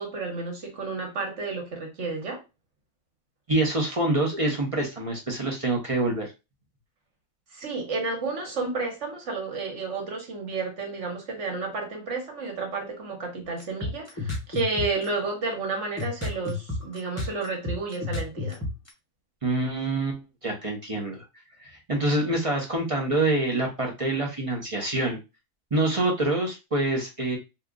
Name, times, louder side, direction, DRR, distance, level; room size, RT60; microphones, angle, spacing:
voice 1, 0.0-2.4 7.5-18.6, right 3 dB, 60° right, 1.4 m, -31 dB
voice 2, 3.5-6.3 19.4-21.2 21.6-25.2 25.7-27.4, right 2 dB, 35° right, 0.7 m, -26 dB
sound 1, 13.6-15.0 15.5-15.6 16.0-18.9, left 2 dB, 15° left, 0.9 m, -30 dB
2.8 x 2.4 x 3.6 m
omnidirectional pair, 1.4 m